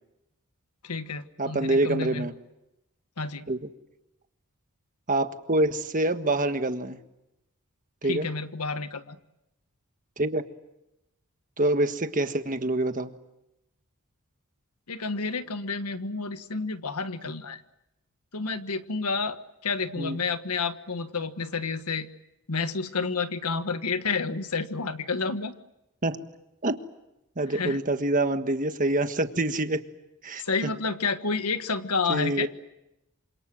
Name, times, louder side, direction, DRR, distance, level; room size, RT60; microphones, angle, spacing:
voice 1, 0.8-2.3 3.2-3.5 8.0-9.1 14.9-17.6 18.3-22.1 22.5-25.5 27.5-27.8 30.4-32.5, left 4 dB, 90° left, 10 dB, 1.5 m, -30 dB
voice 2, 1.4-2.3 3.5-3.6 5.1-7.0 8.0-8.3 10.2-10.4 11.6-13.1 20.0-20.2 26.0-26.2 26.6-26.8 27.4-29.8 30.2-30.7 32.1-32.5, right 2 dB, 35° right, 8 dB, 1.5 m, -26 dB
27.5 x 26.5 x 7.7 m, 0.89 s
head